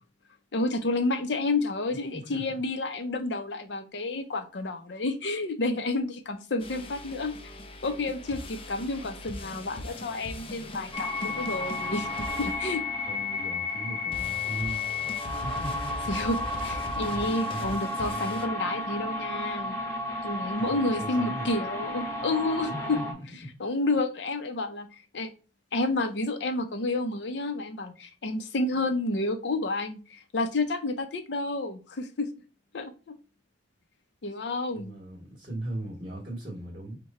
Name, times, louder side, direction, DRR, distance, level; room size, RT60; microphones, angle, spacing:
voice 1, 0.5-7.3 7.8-12.8 16.1-19.8 20.2-23.0 23.6-25.3 25.7-32.3 32.7-33.1 34.2-34.9, left 2 dB, 70° left, 7 dB, 0.6 m, -30 dB
voice 2, 1.9-2.6 13.0-14.8 15.4-15.9 17.3-17.8 20.6-21.5 22.6-23.2 23.4-23.5 34.7-37.0, right 1 dB, 30° right, -3 dB, 1.4 m, -38 dB
sound 1, 6.6-13.3 14.1-18.5, left 1 dB, 30° left, 0.5 m, -40 dB
sound 2, 10.9-23.1, left 2 dB, 15° left, 1.1 m, -33 dB
4.7 x 2.2 x 4.1 m, 0.34 s
head